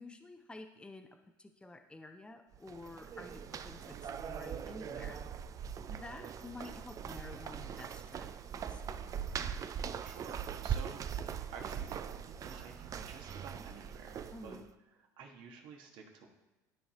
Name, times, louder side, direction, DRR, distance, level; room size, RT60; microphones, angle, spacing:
voice 1, 0.0-5.2 5.8-8.4 8.7-8.8 14.3-14.7, left 2 dB, 10° left, 6 dB, 0.6 m, -50 dB
sound 1, 2.5-14.7, right 8 dB, 35° right, 0.4 m, -41 dB
voice 2, 9.6-11.1 11.5-14.6 14.9-16.3, right 5 dB, 60° right, 2 dB, 1.4 m, -51 dB
12.5 x 4.3 x 2.9 m, 1.1 s
hypercardioid pair, 85°, 9 cm